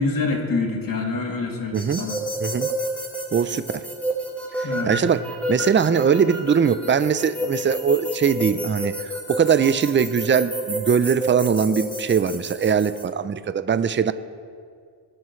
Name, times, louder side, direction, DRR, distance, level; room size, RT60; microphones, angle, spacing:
voice 1, 0.0-2.2 4.6-5.0, left 3 dB, 60° left, -1 dB, 2.9 m, -26 dB
sound 1, 1.7-13.0, equal, 5° left, 3.7 m, -30 dB
voice 2, 1.7-2.0 2.4-2.7 3.3-3.8 4.9-5.2 5.5-14.1, right 7 dB, 30° right, 13 dB, 0.6 m, -21 dB
22.5 x 12.5 x 3.2 m, 2.1 s
cardioid pair, 80°, 39 cm